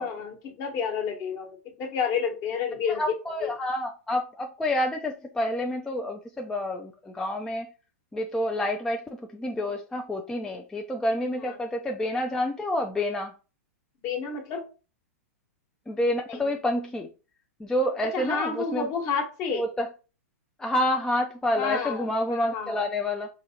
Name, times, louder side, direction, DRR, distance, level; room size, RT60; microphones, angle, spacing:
voice 1, 0.0-3.0 3.4-3.5 14.0-14.6 16.3-16.5 18.1-19.6 21.6-22.8, left 6 dB, 40° left, 4 dB, 1.1 m, -30 dB
voice 2, 2.9-7.7 8.1-13.3 15.9-17.1 17.6-18.9 19.5-19.9 20.6-23.3, left 1 dB, 5° left, 3 dB, 0.4 m, -28 dB
4.9 x 2.8 x 2.8 m, 0.34 s
hypercardioid pair, 120°, 8 cm